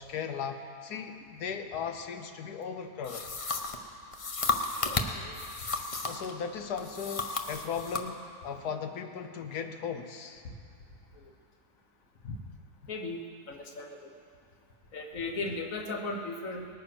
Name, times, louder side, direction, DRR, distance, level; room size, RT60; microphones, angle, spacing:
voice 1, 0.0-3.3 6.0-10.4, left 6 dB, 85° left, 7 dB, 1.5 m, -37 dB
sound 1, 3.0-6.3 6.8-8.1, left 3 dB, 35° left, 0.5 m, -33 dB
voice 2, 4.8-5.4 10.4-10.5 11.1-11.2 12.2-12.4 12.8-13.2 13.5-14.1 14.9-16.7, left 3 dB, 60° left, 3 dB, 1.6 m, -37 dB
19.5 x 9.5 x 6.1 m, 2.4 s
omnidirectional pair, 1.6 m